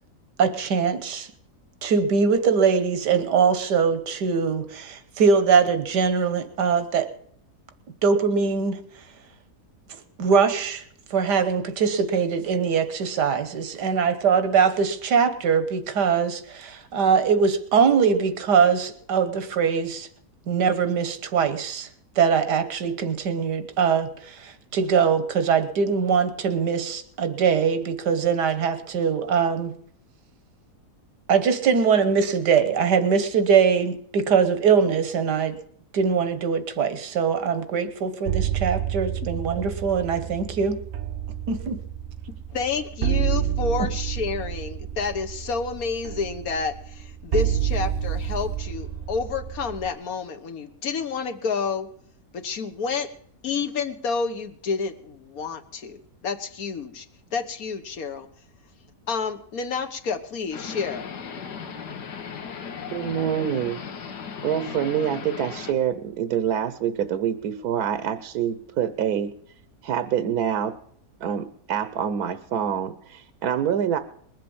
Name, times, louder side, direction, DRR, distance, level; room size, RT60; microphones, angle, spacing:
voice 1, 0.4-1.3 1.8-7.1 8.0-8.8 10.2-10.8 11.1-20.1 20.5-21.9 22.2-29.7 31.3-35.6 35.9-40.8 41.5-41.8 43.8-43.9, right 6 dB, 90° right, 11 dB, 1.8 m, -22 dB
sound 1, 38.3-49.9, right 10 dB, 55° right, 0.9 m, -29 dB
voice 2, 42.5-51.9 52.3-53.1 53.4-57.0 57.3-58.3 59.1-61.0, left 5 dB, 60° left, 6 dB, 1.6 m, -29 dB
sound 2, 47.4-51.3, right 1 dB, 30° left, 1.2 m, -41 dB
sound 3, 60.5-65.7, left 6 dB, 90° left, 1.8 m, -36 dB
voice 3, 62.9-63.8 64.4-69.3 69.8-70.7 71.2-74.0, right 9 dB, 70° right, 12 dB, 1.2 m, -26 dB
21.0 x 7.6 x 7.1 m, 0.64 s
omnidirectional pair, 1.7 m